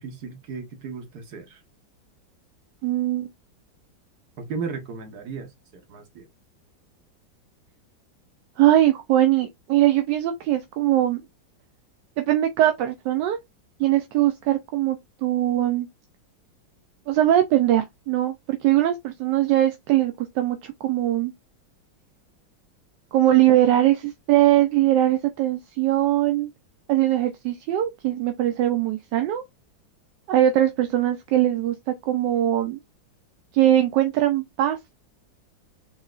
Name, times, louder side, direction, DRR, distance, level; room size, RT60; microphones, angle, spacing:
voice 1, 0.0-1.6 4.4-6.3, right 5 dB, 55° right, 1.5 m, -35 dB
voice 2, 2.8-3.3 8.6-11.2 12.2-13.4 13.8-15.9 17.1-21.3 23.1-26.5 26.9-29.4 30.3-32.8 33.5-34.8, right 13 dB, 75° right, 1.1 m, -21 dB
4.1 x 3.7 x 2.4 m
omnidirectional pair, 2.1 m